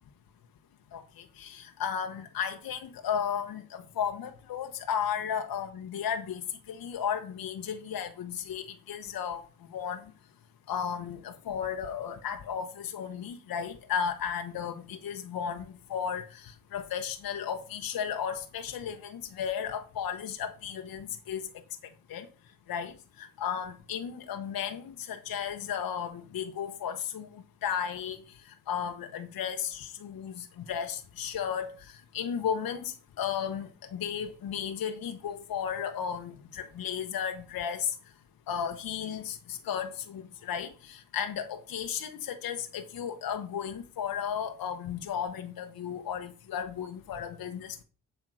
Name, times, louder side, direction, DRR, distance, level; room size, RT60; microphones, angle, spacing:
voice 1, 0.9-9.4 9.7-10.0 10.7-21.5 22.1-22.3 22.7-38.0 38.5-47.8, left 8 dB, 50° left, 1.0 m, -34 dB
7.7 x 3.6 x 6.1 m
hypercardioid pair, 50°, 45 cm